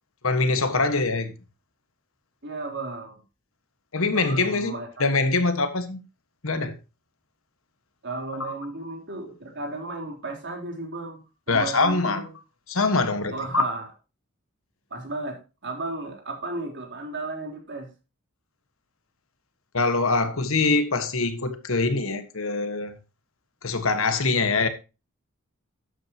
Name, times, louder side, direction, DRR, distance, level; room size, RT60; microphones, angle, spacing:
voice 1, 0.2-1.3 3.9-4.7 5.0-6.0 6.4-6.8 8.4-8.5 11.5-12.3 12.7-13.6 19.7-23.0 23.6-24.7, left 3 dB, 70° left, 1.5 m, -23 dB
voice 2, 2.4-3.2 4.1-4.9 8.0-11.2 11.5-12.3 13.3-13.9 14.9-17.9, right 2 dB, 55° right, 3.7 m, -34 dB
12.5 x 9.1 x 2.9 m
head